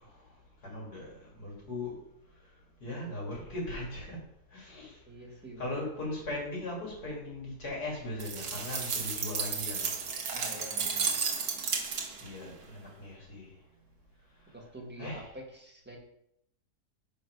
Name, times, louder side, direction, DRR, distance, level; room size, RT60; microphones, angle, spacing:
voice 1, 0.6-1.9 2.8-4.2 4.5-5.0 5.6-9.9 12.2-13.5 15.0-15.3, left 1 dB, 75° left, -4 dB, 3.3 m, -38 dB
voice 2, 5.1-5.9 10.3-11.1 14.5-16.0, right 1 dB, 5° right, -1 dB, 1.5 m, -46 dB
sound 1, 8.2-12.4, right 5 dB, 70° right, 1.5 m, -33 dB
6.6 x 5.4 x 4.7 m, 0.76 s
omnidirectional pair, 1.7 m